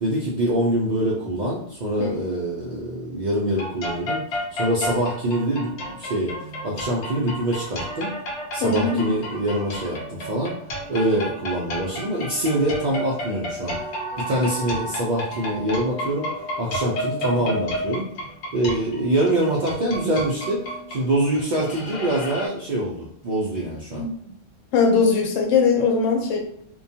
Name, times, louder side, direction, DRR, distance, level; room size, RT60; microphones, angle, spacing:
voice 1, 0.0-8.1 8.5-13.8 14.2-16.3 16.6-18.1 18.5-20.6 20.9-24.1, right 1 dB, 65° right, -5 dB, 0.4 m, -25 dB
sound 1, 3.5-22.5, equal, 65° left, 0.8 m, -32 dB
voice 2, 8.6-9.1 24.0-24.3 24.7-26.4, left 5 dB, 90° left, 2 dB, 1.0 m, -20 dB
2.2 x 2.2 x 2.6 m, 0.70 s
omnidirectional pair, 1.3 m